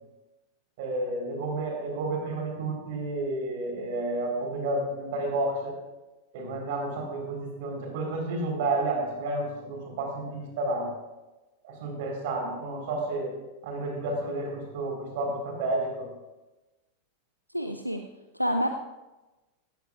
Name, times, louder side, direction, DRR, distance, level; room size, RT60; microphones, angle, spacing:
voice 1, 0.8-5.7 6.3-10.9 11.6-13.3 13.6-16.1, right 2 dB, 50° right, 1 dB, 4.2 m, -31 dB
voice 2, 17.5-18.0 18.3-18.7, equal, 90° right, 5 dB, 0.6 m, -27 dB
17.0 x 15.0 x 2.5 m, 1.1 s
figure-of-eight pair, 90°, 0 cm